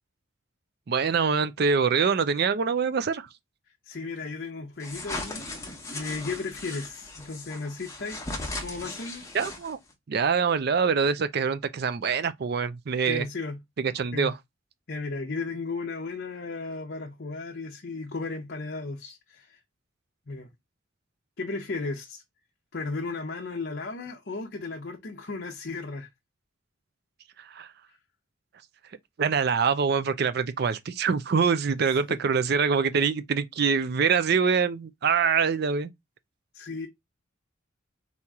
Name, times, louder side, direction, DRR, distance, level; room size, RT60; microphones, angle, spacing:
voice 1, 0.9-3.3 9.3-9.8 10.1-13.2 13.8-14.3 27.6-27.7 29.2-35.9, right 5 dB, 50° right, 0.4 m, -24 dB
voice 2, 3.8-5.4 5.9-8.2 8.6-9.2 13.1-13.6 14.1-14.3 14.9-19.6 20.3-20.5 21.4-22.2 22.7-26.1 31.9-32.2 32.6-32.7 36.5-36.9, left 3 dB, 50° left, 0.7 m, -35 dB
sound 1, 4.8-9.9, left 2 dB, 15° left, 0.9 m, -37 dB
4.2 x 2.9 x 3.5 m
head